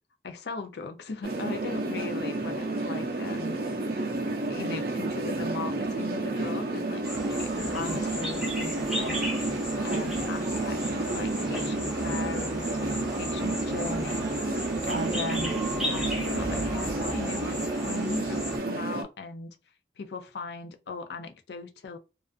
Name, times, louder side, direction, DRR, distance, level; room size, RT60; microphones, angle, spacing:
voice 1, 0.2-3.8 4.5-9.2 9.8-19.6 20.0-22.0, left 4 dB, 75° left, 0.4 m, -39 dB
sound 1, 1.2-19.0, right 2 dB, 55° right, 0.5 m, -30 dB
sound 2, 7.0-18.6, equal, 5° right, 0.6 m, -35 dB
2.4 x 2.3 x 2.4 m
head